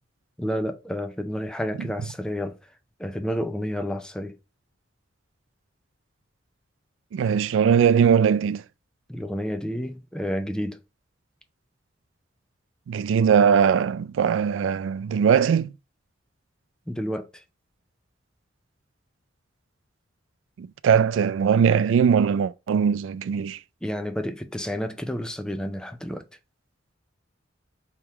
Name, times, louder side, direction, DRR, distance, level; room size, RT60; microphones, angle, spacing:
voice 1, 0.4-2.6 3.0-4.4 9.1-10.8 16.9-17.4 23.8-26.3, equal, 5° left, 0.4 m, -30 dB
voice 2, 7.1-8.6 12.9-15.7 20.6-23.6, right 7 dB, 90° right, 0.3 m, -20 dB
3.4 x 3.0 x 4.6 m
head